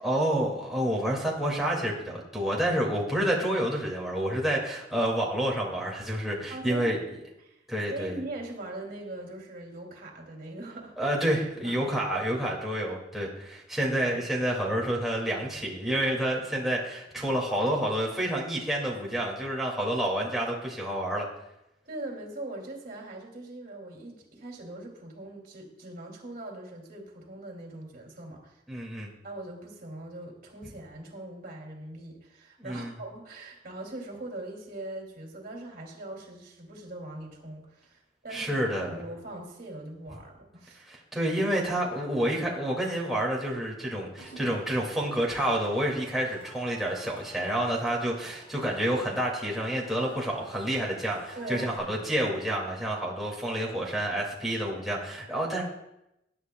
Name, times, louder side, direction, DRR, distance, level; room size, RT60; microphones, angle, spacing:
voice 1, 0.0-7.0 7.7-8.2 11.0-21.3 28.7-29.1 32.6-32.9 38.3-39.0 40.9-55.6, right 1 dB, ahead, -4 dB, 2.2 m, -29 dB
voice 2, 6.5-6.9 7.4-7.6 7.9-10.9 11.6-11.9 21.8-28.6 29.2-40.8 51.3-52.0, right 2 dB, 55° right, 0 dB, 2.6 m, -41 dB
Cheering / Crowd, 44.2-51.8, right 1 dB, 30° left, 4.8 m, -51 dB
20.5 x 10.0 x 2.3 m, 0.87 s
head